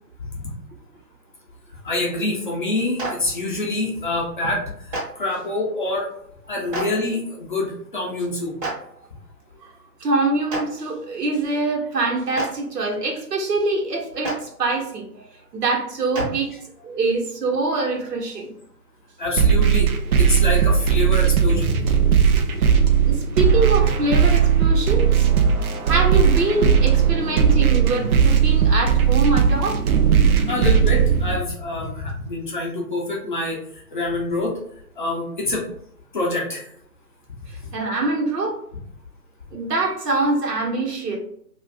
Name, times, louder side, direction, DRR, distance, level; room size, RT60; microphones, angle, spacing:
voice 1, 1.8-6.1 6.5-8.6 19.2-19.9 20.2-21.7 25.4-25.5 30.5-33.6 33.9-34.6 35.0-35.6 36.1-36.6, left 2 dB, 35° left, -2 dB, 0.5 m, -26 dB
Clapping, 3.0-3.1 4.9-5.0 6.7-6.8 8.6-8.7 10.5-10.6 12.3-12.4 14.2-14.3 16.1-16.2, right 2 dB, 20° right, 0.7 m, -26 dB
voice 2, 10.0-15.1 15.5-16.5 16.8-18.5 23.1-25.3 25.8-29.8 37.5-38.6 39.5-41.2, right 2 dB, 80° right, 0 dB, 1.1 m, -24 dB
sound 1, 19.4-31.4, right 7 dB, 65° right, 0.5 m, -17 dB
2.4 x 2.4 x 3.3 m, 0.71 s
hypercardioid pair, 140°, 47 cm